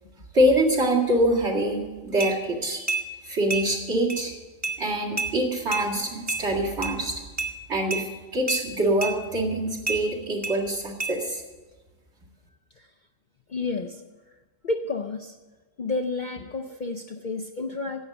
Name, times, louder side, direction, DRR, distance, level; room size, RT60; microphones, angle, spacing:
voice 1, 0.3-2.9 3.2-4.3 4.8-7.2 7.7-11.4, right 1 dB, 60° right, -3 dB, 2.5 m, -25 dB
sound 1, 2.2-2.3 2.9-3.0 3.5-3.6 4.1-4.2 4.6-4.8 5.2-5.3 5.7-5.9 6.3-6.4 6.8-6.9 7.4-7.5 7.9-8.0 8.5-8.6 9.0-9.1 9.9-10.0 10.4-10.6 11.0-11.1, right 3 dB, 15° right, 0.9 m, -28 dB
voice 2, 13.5-14.0 14.6-15.4 15.8-18.0, left 3 dB, 50° left, 5 dB, 0.6 m, -30 dB
11.0 x 8.2 x 7.7 m, 1.2 s
omnidirectional pair, 1.3 m